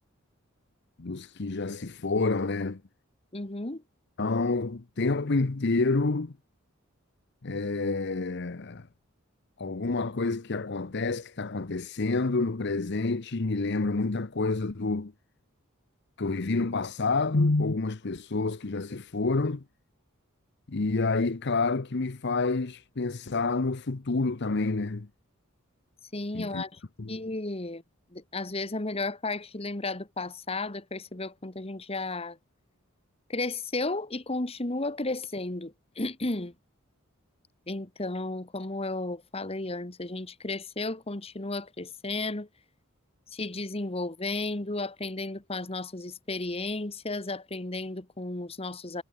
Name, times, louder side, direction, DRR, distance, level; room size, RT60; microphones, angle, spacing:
voice 1, 1.0-2.8 4.2-6.3 7.4-8.9 9.6-15.1 16.2-19.6 20.7-25.1 26.3-26.6 27.0-27.2, left 3 dB, 55° left, 0.8 m, -28 dB
voice 2, 3.3-3.8 26.1-26.8 27.1-27.8 28.1-32.4 33.3-36.5 37.7-42.5 43.3-49.0, left 2 dB, 30° left, 1.5 m, -33 dB
head